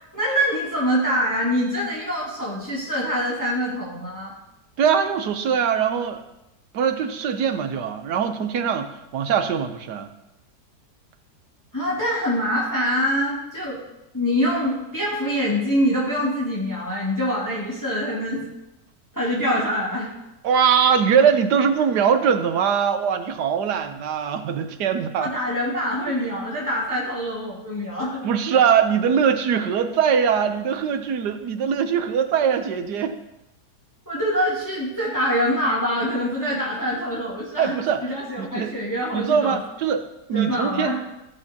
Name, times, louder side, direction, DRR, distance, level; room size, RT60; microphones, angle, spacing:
voice 1, 0.0-4.3 11.7-13.8 14.1-18.5 19.1-20.1 25.2-28.3 34.1-39.6 40.3-41.0, equal, 10° left, -7 dB, 2.8 m, -25 dB
voice 2, 4.8-6.2 6.7-10.1 20.4-25.3 28.2-33.1 37.6-38.7 39.1-40.9, right 7 dB, 75° right, 8 dB, 1.4 m, -22 dB
16.0 x 8.4 x 2.9 m, 0.91 s
omnidirectional pair, 1.8 m